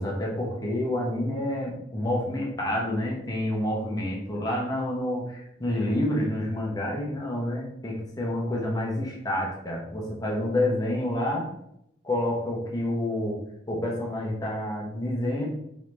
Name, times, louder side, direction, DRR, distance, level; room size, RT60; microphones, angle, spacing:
voice 1, 0.0-11.5 12.0-13.4 13.7-15.5, left 1 dB, 20° left, -2 dB, 0.9 m, -28 dB
3.7 x 3.0 x 3.2 m, 0.77 s
head